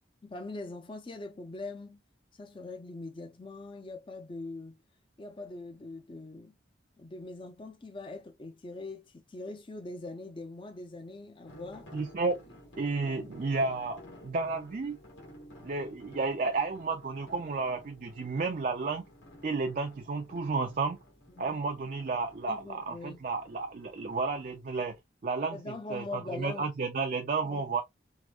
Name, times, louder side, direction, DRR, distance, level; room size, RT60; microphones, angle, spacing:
voice 1, 0.2-2.0 2.4-4.8 5.2-6.5 7.0-11.9 13.0-13.4 21.4-21.6 22.5-23.2 25.5-26.7 27.4-27.7, left 2 dB, 25° left, 0.5 m, -42 dB
sound 1, 11.5-25.0, left 1 dB, 75° left, 1.8 m, -53 dB
voice 2, 11.9-12.4 12.8-15.0 15.6-19.0 19.4-21.0 21.4-24.9 25.2-27.8, right 4 dB, 45° right, 0.4 m, -32 dB
4.7 x 2.1 x 2.3 m
head